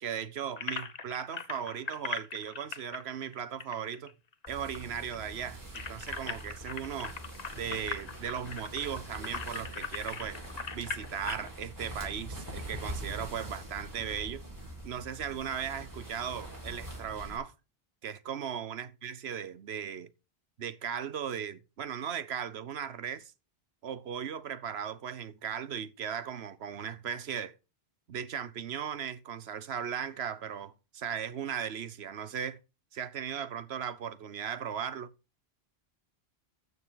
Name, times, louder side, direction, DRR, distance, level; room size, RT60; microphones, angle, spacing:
voice 1, 0.0-4.1 4.5-7.2 7.6-10.4 10.7-14.4 14.8-17.5 18.0-20.1 20.6-23.3 23.8-27.6 28.1-32.6 32.9-35.1, right 8 dB, 85° right, 1.1 m, -37 dB
sound 1, 0.6-4.5 4.7-4.8 5.1-11.5, left 5 dB, 40° left, 1.0 m, -40 dB
sound 2, 4.5-17.4, right 1 dB, 20° right, 4.5 m, -43 dB
13.0 x 6.8 x 4.0 m
omnidirectional pair, 1.1 m